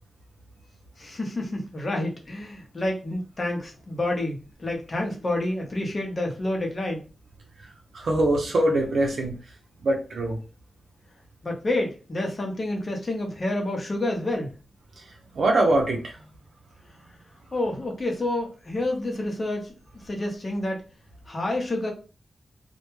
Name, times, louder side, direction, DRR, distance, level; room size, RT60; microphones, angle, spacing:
voice 1, 1.0-7.1 11.4-14.5 17.5-19.7 20.0-20.8 21.3-21.9, left 1 dB, 40° left, 1 dB, 0.8 m, -29 dB
voice 2, 7.9-9.4 9.8-10.4 15.4-16.2, right 1 dB, 70° right, 0 dB, 0.6 m, -23 dB
2.2 x 2.1 x 3.0 m, 0.33 s
cardioid pair, 80°, 0 cm